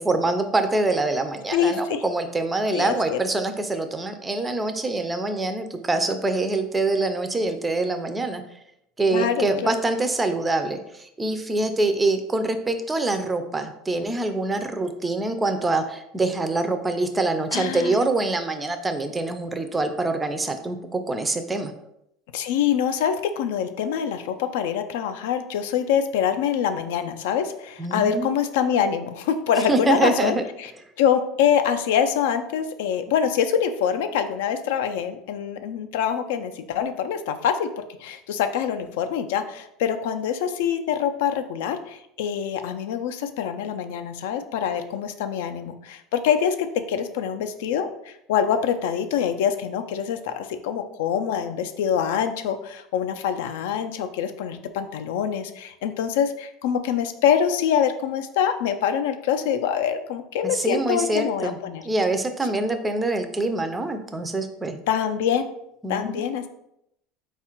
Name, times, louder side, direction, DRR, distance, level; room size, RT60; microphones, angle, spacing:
voice 1, 0.0-8.4 9.0-21.7 27.8-28.4 29.7-30.4 60.4-61.6 61.8-64.8 65.8-66.2, right 2 dB, 10° right, 7 dB, 0.3 m, -25 dB
voice 2, 1.5-2.0 2.7-3.2 9.1-9.7 17.5-18.0 22.3-30.7 31.0-37.7 38.0-61.8 64.9-65.5 65.9-66.5, left 8 dB, 85° left, 9 dB, 0.4 m, -25 dB
4.4 x 2.4 x 4.3 m, 0.79 s
cardioid pair, 170°, 0 cm